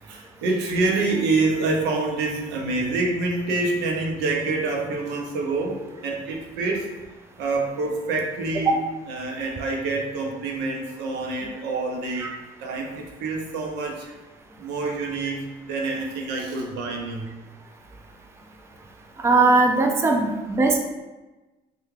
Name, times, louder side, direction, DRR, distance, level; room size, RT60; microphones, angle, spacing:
voice 1, 0.0-6.9 7.4-8.8 9.1-12.3 12.6-14.1 14.6-17.3, right 3 dB, 85° right, 1 dB, 0.7 m, -26 dB
voice 2, 19.2-20.8, right 3 dB, 15° right, 2 dB, 0.4 m, -19 dB
3.3 x 2.3 x 3.2 m, 1.1 s
cardioid pair, 110°, 17 cm